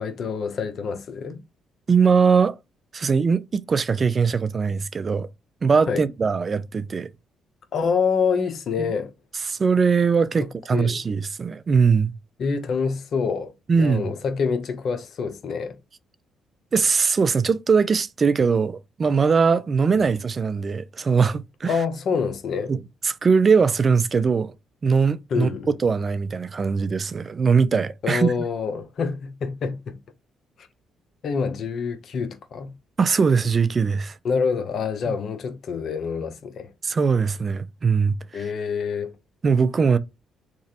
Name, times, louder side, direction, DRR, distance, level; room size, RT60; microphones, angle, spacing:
voice 1, 0.0-1.4 5.9-6.0 7.7-9.1 10.7-11.0 12.4-13.5 13.8-15.8 20.0-20.1 21.7-22.7 25.3-25.8 28.0-30.0 31.2-32.7 34.2-36.7 38.3-39.1, left 5 dB, 60° left, 0.7 m, -26 dB
voice 2, 1.9-2.6 2.9-5.3 5.6-7.1 8.8-8.9 9.5-12.1 13.7-14.0 16.7-21.8 22.7-22.8 23.0-24.5 24.8-28.3 33.0-34.2 35.1-35.2 36.8-38.5 39.4-40.0, right 5 dB, 40° right, 0.4 m, -21 dB
3.0 x 2.4 x 2.8 m
supercardioid pair, 70°, 0 cm